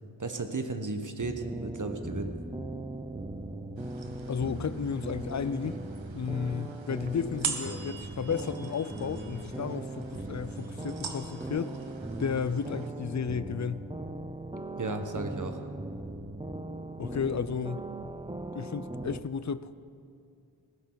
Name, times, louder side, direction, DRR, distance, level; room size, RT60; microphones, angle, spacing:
voice 1, 0.2-2.3 14.8-15.6, right 3 dB, 40° right, 6 dB, 1.4 m, -34 dB
sound 1, 1.2-19.2, right 2 dB, 10° right, 0.7 m, -39 dB
sound 2, 3.8-12.9, right 5 dB, 90° right, 1.3 m, -43 dB
voice 2, 4.3-5.8 6.1-11.8 12.2-13.8 17.0-17.9 18.5-19.8, left 6 dB, 40° left, 15 dB, 0.6 m, -33 dB
19.0 x 16.0 x 4.1 m, 2.5 s
wide cardioid pair, 65°, 44 cm